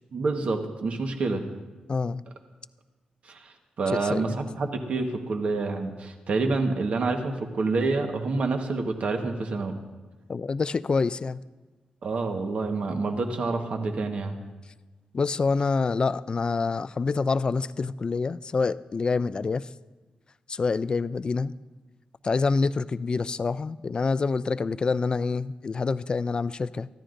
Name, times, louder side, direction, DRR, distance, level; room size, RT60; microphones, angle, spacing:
voice 1, 0.1-1.4 3.2-9.7 12.0-14.3, right 3 dB, 55° right, 4 dB, 1.3 m, -28 dB
voice 2, 1.9-2.2 3.9-4.4 10.3-11.4 15.1-19.6 20.5-21.5 22.2-26.9, left 4 dB, 35° left, 16 dB, 0.3 m, -26 dB
24.0 x 14.0 x 2.6 m, 1.2 s
wide cardioid pair, 120°, 3 cm